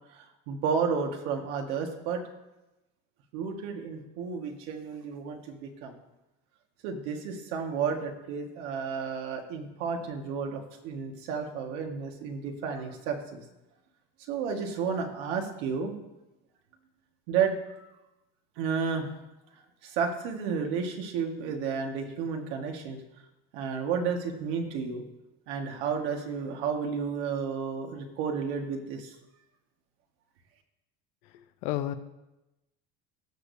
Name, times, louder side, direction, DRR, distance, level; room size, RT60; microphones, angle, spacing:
voice 1, 0.1-2.2 3.3-5.9 6.8-13.4 14.3-15.9 17.3-17.9 18.6-19.1 19.8-23.0 23.5-25.0 25.5-29.2, right 6 dB, 75° right, 3 dB, 1.8 m, -32 dB
voice 2, 31.3-31.9, left 13 dB, 75° left, 9 dB, 1.0 m, -32 dB
19.0 x 6.5 x 2.7 m, 0.97 s
supercardioid pair, 115°, 33 cm